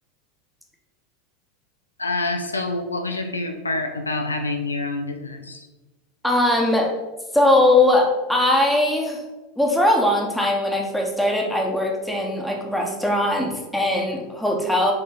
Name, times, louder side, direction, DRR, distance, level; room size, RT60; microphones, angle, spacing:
voice 1, 2.0-5.7, left 2 dB, 85° left, 5 dB, 0.6 m, -27 dB
voice 2, 6.2-6.9 7.3-9.2 9.6-14.9, left 1 dB, ahead, 0 dB, 1.4 m, -20 dB
6.6 x 3.8 x 4.1 m, 1.2 s
figure-of-eight pair, 85°, 0 cm